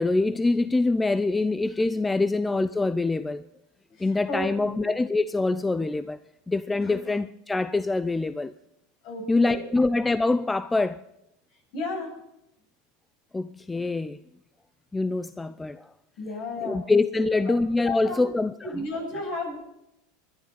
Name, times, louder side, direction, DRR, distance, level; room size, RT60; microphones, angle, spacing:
voice 1, 0.0-3.4 4.0-6.2 6.5-8.5 9.3-11.0 13.3-14.2 14.9-15.9 16.6-18.5, left 3 dB, 10° left, 0.6 m, -25 dB
voice 2, 3.9-4.8 6.9-7.0 9.0-9.7 11.7-12.2 16.2-16.8 17.1-17.6 17.8-18.3 18.6-19.6, left 2 dB, 55° left, 7.6 m, -34 dB
21.5 x 11.5 x 4.2 m
hypercardioid pair, 90°, 0 cm